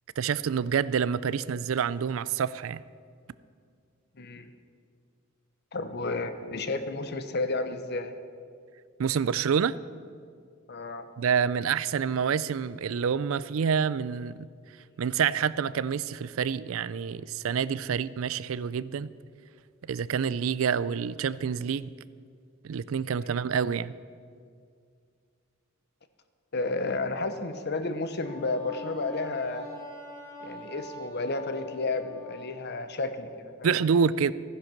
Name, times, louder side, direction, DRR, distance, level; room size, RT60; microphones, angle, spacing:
voice 1, 0.2-2.8 9.0-9.8 11.2-14.5 15.0-19.1 19.8-21.9 22.6-23.9 33.6-34.3, right 7 dB, 75° right, 18 dB, 0.4 m, -27 dB
voice 2, 4.2-4.5 5.7-8.1 10.7-11.1 23.3-23.4 26.5-29.7 30.4-33.7, left 3 dB, 55° left, 10 dB, 0.9 m, -32 dB
Wind instrument woodwind instrument, 28.2-32.5, left 2 dB, 20° left, 3.7 m, -43 dB
15.0 x 10.0 x 6.0 m, 2.2 s
head